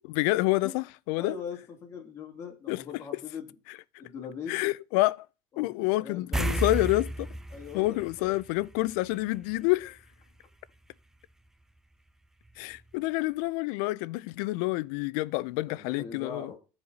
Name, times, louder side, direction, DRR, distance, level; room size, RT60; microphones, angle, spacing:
voice 1, 0.1-1.3 2.7-2.8 4.5-5.3 5.6-7.3 7.7-10.0 12.6-16.5, left 20 dB, 75° left, 0.4 m, -28 dB
voice 2, 1.2-3.5 4.0-4.7 5.8-6.6 7.5-8.0 15.7-16.6, left 6 dB, 30° left, 2.8 m, -41 dB
sound 1, 6.3-9.1 9.4-9.6 12.5-12.6 12.9-13.0, right 1 dB, 5° right, 0.4 m, -32 dB
15.0 x 5.0 x 4.0 m
cardioid pair, 135°, 10 cm